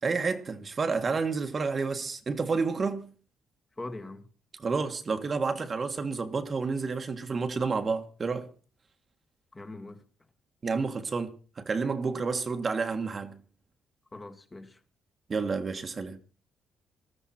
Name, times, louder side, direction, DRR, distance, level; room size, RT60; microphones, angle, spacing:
voice 1, 0.0-3.1 4.5-8.5 10.6-13.4 15.3-16.2, right 4 dB, 40° right, 1.7 m, -30 dB
voice 2, 3.8-4.3 9.5-10.0 14.1-14.8, left 2 dB, 20° left, 1.9 m, -41 dB
19.5 x 13.0 x 4.4 m
cardioid pair, 90°, 0 cm